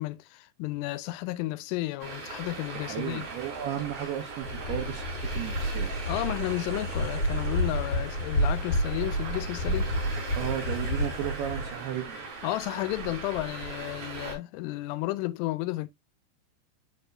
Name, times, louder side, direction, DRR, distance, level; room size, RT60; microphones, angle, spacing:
voice 1, 0.0-3.3 6.1-9.9 12.4-15.9, left 18 dB, 85° left, 3.0 m, -32 dB
Traffic noise roadway noise, 2.0-14.3, right 4 dB, 50° right, 5.7 m, -40 dB
voice 2, 2.7-5.9 10.4-12.2, right 11 dB, 75° right, 2.4 m, -34 dB
Waves surf, 4.4-11.7, equal, 65° left, 1.1 m, -30 dB
12.5 x 4.2 x 2.2 m
omnidirectional pair, 5.5 m